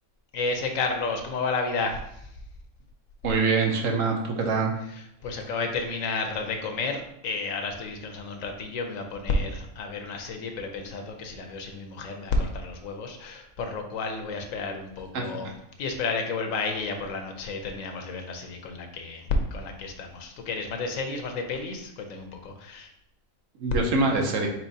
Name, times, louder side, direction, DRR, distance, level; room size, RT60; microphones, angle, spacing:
voice 1, 0.3-2.0 5.2-15.5 15.8-22.9, left 3 dB, 75° left, 4 dB, 1.1 m, -31 dB
voice 2, 3.2-4.7 15.1-15.2 23.6-24.5, right 4 dB, 70° right, 2 dB, 1.1 m, -24 dB
4.4 x 4.3 x 2.7 m, 0.78 s
omnidirectional pair, 1.4 m